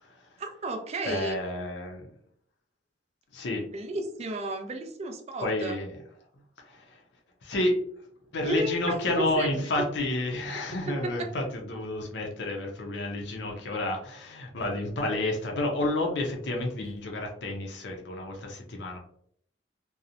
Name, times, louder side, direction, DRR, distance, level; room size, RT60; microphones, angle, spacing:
voice 1, 0.4-1.4 3.7-5.8 8.4-9.9 10.9-11.3, right 2 dB, 35° right, 5 dB, 0.4 m, -33 dB
voice 2, 1.0-2.0 3.3-3.6 5.4-6.0 6.6-7.0 7.4-7.8 8.3-19.0, left 1 dB, 80° left, 1 dB, 0.5 m, -30 dB
2.8 x 2.0 x 2.5 m, 0.65 s
head